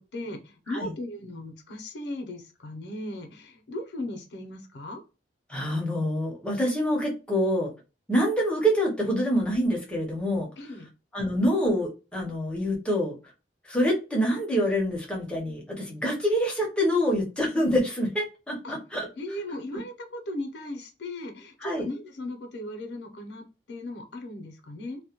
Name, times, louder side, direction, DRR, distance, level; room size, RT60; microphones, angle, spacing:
voice 1, 0.0-5.0 10.6-10.9 18.6-18.8 19.2-25.0, left 1 dB, 80° left, 5 dB, 0.5 m, -37 dB
voice 2, 5.5-7.7 8.1-10.5 11.1-13.2 13.7-19.1 21.6-21.9, equal, 5° left, -2 dB, 0.6 m, -26 dB
2.1 x 2.1 x 2.8 m, 0.30 s
head